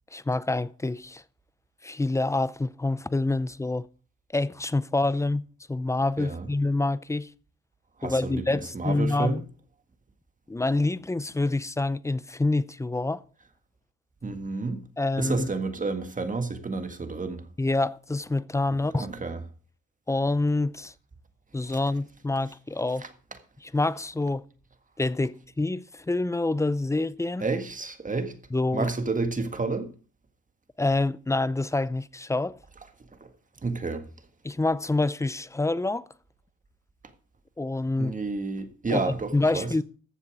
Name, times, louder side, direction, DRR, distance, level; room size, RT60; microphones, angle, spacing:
voice 1, 0.1-1.2 1.8-3.9 4.3-7.3 8.0-9.4 10.5-13.2 15.0-15.5 17.6-19.1 20.1-20.9 21.5-23.1 23.6-24.4 25.0-27.5 28.5-28.9 30.8-32.6 34.4-36.0 37.6-38.1 38.9-39.8, left 2 dB, 10° left, 0.5 m, -27 dB
voice 2, 6.2-6.5 8.0-9.4 14.2-14.8 15.2-17.4 19.0-19.4 21.7-21.8 23.0-23.1 27.4-28.3 28.7-29.9 33.2-33.3 33.6-34.0 38.0-39.7, right 3 dB, 25° right, 1.7 m, -30 dB
14.5 x 7.0 x 4.8 m
cardioid pair, 90°, 30 cm